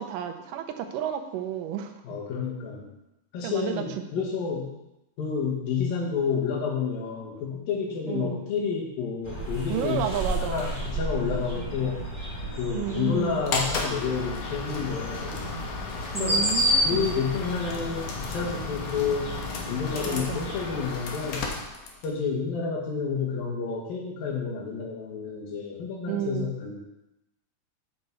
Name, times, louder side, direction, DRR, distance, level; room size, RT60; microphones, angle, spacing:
voice 1, 0.0-1.9 3.4-3.9 8.1-8.4 9.7-10.7 12.7-13.5 16.1-17.1 20.1-20.5 26.1-26.5, right 9 dB, 75° right, 6 dB, 2.2 m, -31 dB
voice 2, 2.0-3.0 3.3-4.7 5.2-10.0 10.4-12.0 12.6-15.4 16.2-16.4 16.8-19.4 19.7-21.5 22.0-26.7, left 6 dB, 85° left, -2 dB, 3.3 m, -30 dB
sound 1, 9.2-20.8, equal, 15° left, 1.2 m, -32 dB
sound 2, 13.5-22.2, left 4 dB, 65° left, 1.7 m, -34 dB
8.1 x 6.7 x 4.5 m, 0.92 s
omnidirectional pair, 4.0 m